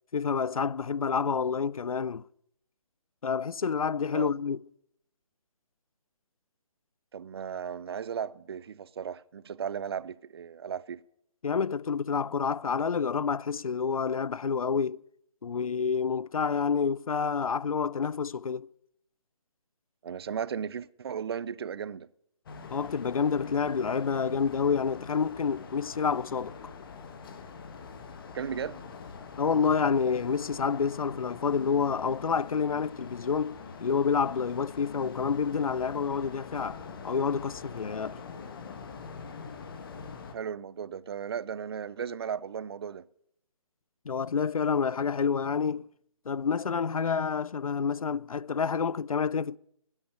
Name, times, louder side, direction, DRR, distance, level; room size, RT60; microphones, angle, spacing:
voice 1, 0.1-2.2 3.2-4.6 11.4-15.0 15.4-18.7 22.7-26.6 29.4-36.8 37.0-38.2 44.1-45.9 46.3-49.6, left 6 dB, 85° left, 0.5 m, -28 dB
voice 2, 7.1-11.0 20.0-22.1 28.3-28.8 40.3-43.0, right 7 dB, 45° right, 0.5 m, -36 dB
sound 1, 22.5-40.4, left 5 dB, 40° left, 1.7 m, -44 dB
14.0 x 9.9 x 8.8 m
figure-of-eight pair, 150°, 18 cm